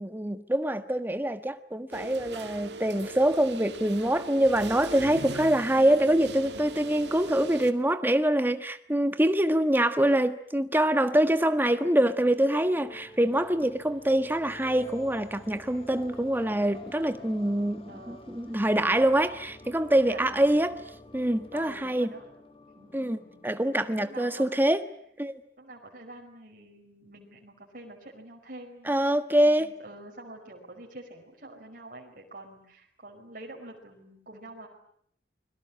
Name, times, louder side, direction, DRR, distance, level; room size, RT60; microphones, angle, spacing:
voice 1, 0.0-17.8 18.1-20.8 21.1-22.1 22.9-24.8 25.2-25.4 28.9-29.7, right 1 dB, 10° right, 1.4 m, -25 dB
sound 1, 1.9-7.7, right 2 dB, 70° right, 2.2 m, -40 dB
sound 2, 12.3-25.2, left 2 dB, 35° left, 2.7 m, -50 dB
voice 2, 17.9-18.3 19.0-19.3 20.1-20.6 21.5-22.2 22.8-24.5 25.6-34.7, right 2 dB, 50° right, 5.2 m, -47 dB
29.5 x 22.0 x 8.7 m
head